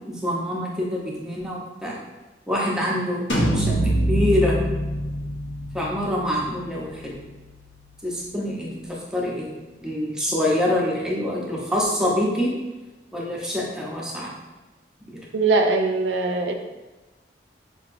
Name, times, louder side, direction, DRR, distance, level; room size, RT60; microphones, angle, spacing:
voice 1, 0.1-2.0 2.5-3.2 3.5-4.6 5.7-7.2 8.0-9.5 9.8-12.5 13.1-14.3 15.1-15.2, left 1 dB, 5° right, -4 dB, 0.6 m, -25 dB
sound 1, 3.3-8.9, right 1 dB, 75° left, 0.7 m, -26 dB
voice 2, 15.3-16.5, right 3 dB, 80° right, 4 dB, 0.4 m, -21 dB
4.6 x 2.8 x 2.5 m, 1.1 s
head